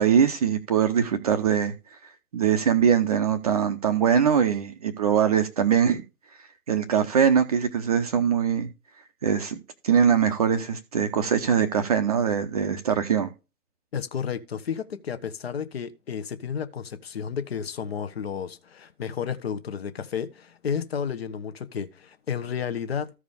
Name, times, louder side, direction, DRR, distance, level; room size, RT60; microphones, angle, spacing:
voice 1, 0.0-1.7 2.3-6.0 6.7-8.7 9.2-9.6 9.8-13.3, right 7 dB, 25° right, 0.8 m, -22 dB
voice 2, 13.9-23.1, left 7 dB, 40° left, 1.1 m, -32 dB
14.0 x 4.9 x 3.5 m
figure-of-eight pair, 135°, 46 cm